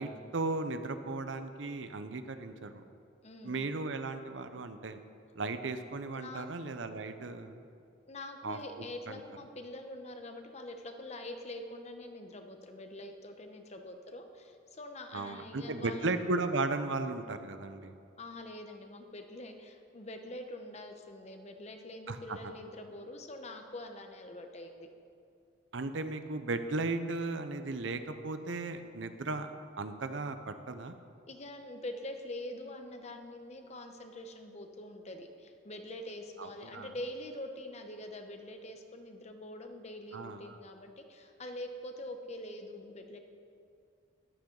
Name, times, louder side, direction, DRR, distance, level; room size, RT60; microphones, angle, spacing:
voice 1, 0.0-2.8 3.4-5.0 5.4-7.6 8.4-8.6 9.1-9.2 15.1-17.9 22.1-22.4 25.7-29.5 29.8-30.9 36.4-36.9 40.1-40.6, right 3 dB, 70° right, 9 dB, 0.7 m, -36 dB
voice 2, 3.2-3.7 6.1-6.5 8.1-16.1 18.2-24.9 31.3-43.2, left 1 dB, 35° left, 6 dB, 0.9 m, -44 dB
14.0 x 12.0 x 3.9 m, 2.4 s
head